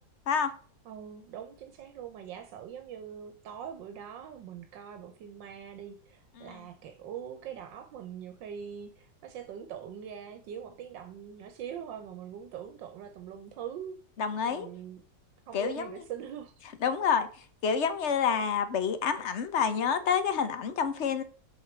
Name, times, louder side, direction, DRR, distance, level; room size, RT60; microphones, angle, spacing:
voice 1, 0.8-14.0 14.5-15.0 15.5-16.5, right 8 dB, 85° right, 1.5 m, -42 dB
voice 2, 14.2-14.7 15.5-15.9 16.8-17.3 17.6-21.2, left 6 dB, 50° left, 0.9 m, -28 dB
6.4 x 4.8 x 5.9 m
omnidirectional pair, 1.9 m